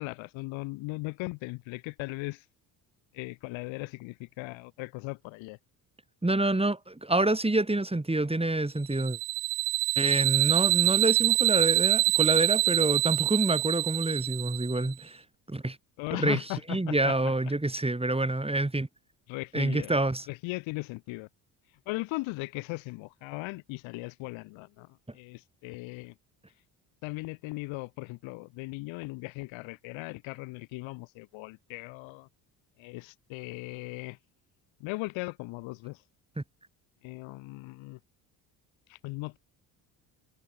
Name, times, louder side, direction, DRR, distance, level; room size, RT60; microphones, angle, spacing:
voice 1, 0.0-2.4 3.1-5.6 16.0-17.2 19.3-20.0 20.3-21.3 21.9-26.1 27.0-32.3 32.8-34.2 34.8-36.0 37.0-38.0 38.9-39.4, left 23 dB, 80° left, 3.7 m, -38 dB
voice 2, 6.2-9.2 10.0-15.2 15.5-15.8 16.1-18.9 19.5-20.3 36.4-36.5, right 2 dB, 10° right, 7.7 m, -27 dB
sound 1, 8.9-14.9, right 39 dB, 85° right, 0.7 m, -25 dB
supercardioid pair, 65°, 46 cm